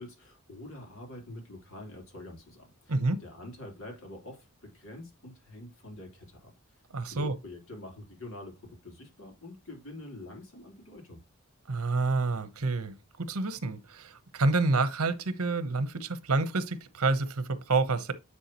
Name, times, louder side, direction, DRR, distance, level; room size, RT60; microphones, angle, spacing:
voice 1, 0.0-6.8 7.1-11.2, left 1 dB, 65° left, 3.5 m, -46 dB
voice 2, 2.9-3.2 6.9-7.3 11.7-18.1, right 3 dB, 85° right, 1.0 m, -28 dB
9.8 x 4.7 x 3.0 m
head